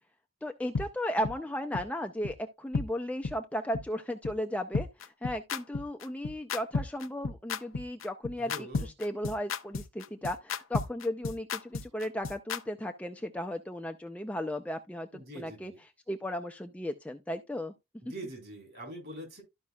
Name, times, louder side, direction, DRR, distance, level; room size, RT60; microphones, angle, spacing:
voice 1, 0.4-17.7, left 1 dB, 5° left, 0.5 m, -35 dB
sound 1, 0.7-0.8 1.2-1.3 1.7-1.8 2.2-2.3 2.7-2.9 3.2-3.3 3.7-3.8 4.2-4.3 4.7-12.6, left 4 dB, 75° left, 0.6 m, -32 dB
voice 2, 8.5-8.9 15.1-15.8 18.0-19.4, right 1 dB, 50° right, 4.3 m, -43 dB
13.5 x 5.3 x 2.3 m
head